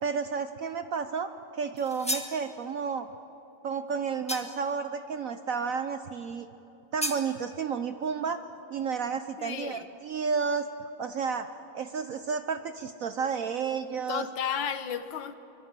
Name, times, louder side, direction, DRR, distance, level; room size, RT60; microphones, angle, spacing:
voice 1, 0.0-3.1 3.6-6.5 6.9-8.4 8.7-10.7 11.0-11.5 11.7-14.2, right 6 dB, 60° right, 10 dB, 0.9 m, -31 dB
sound 1, 1.8-2.4 4.3-4.7 7.0-7.3, equal, 5° left, 1.2 m, -33 dB
voice 2, 9.4-9.9 14.1-15.4, left 8 dB, 80° left, 11 dB, 1.8 m, -33 dB
24.5 x 23.5 x 7.5 m, 3.0 s
omnidirectional pair, 2.1 m